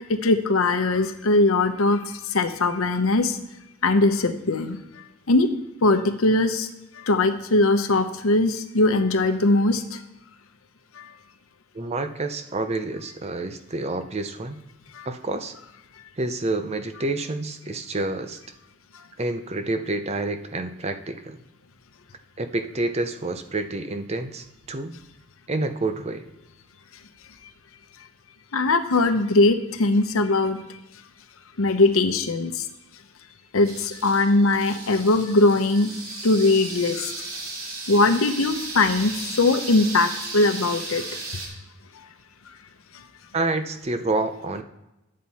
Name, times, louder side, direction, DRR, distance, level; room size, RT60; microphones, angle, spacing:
voice 1, 0.1-3.4 3.8-4.8 5.3-5.5 5.8-6.7 7.0-10.0 11.0-11.1 14.9-15.1 28.5-30.6 31.6-32.7 33.5-35.9 36.2-37.1 37.9-41.1, left 2 dB, 80° left, 9 dB, 0.8 m, -20 dB
voice 2, 11.7-14.6 15.0-15.6 16.2-18.4 19.2-21.4 22.4-24.9 25.5-26.2 43.3-44.6, right 2 dB, 30° right, 8 dB, 0.6 m, -28 dB
sound 1, 33.6-41.5, right 3 dB, 85° right, 2.7 m, -35 dB
10.5 x 7.5 x 4.2 m, 0.94 s
head